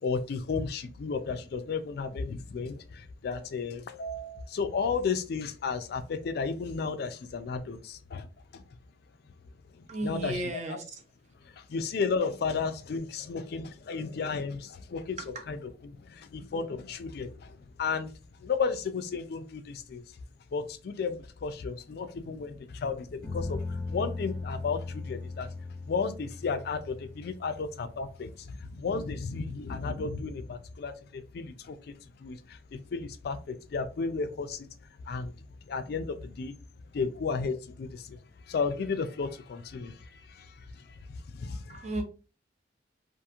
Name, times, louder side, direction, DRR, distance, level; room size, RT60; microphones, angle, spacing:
voice 1, 0.0-8.3 8.5-8.6 9.7-10.8 11.4-15.2 15.5-15.6 15.8-18.1 18.4-20.0 20.5-25.5 25.8-34.7 35.1-36.6 36.9-41.9, left 5 dB, 60° left, 9 dB, 0.4 m, -34 dB
voice 2, 9.9-11.0 15.3-15.4 41.7-42.0, right 2 dB, 40° right, 4 dB, 0.6 m, -34 dB
sound 1, 23.2-28.8, left 3 dB, 10° left, 0.6 m, -39 dB
2.8 x 2.5 x 2.4 m, 0.34 s
head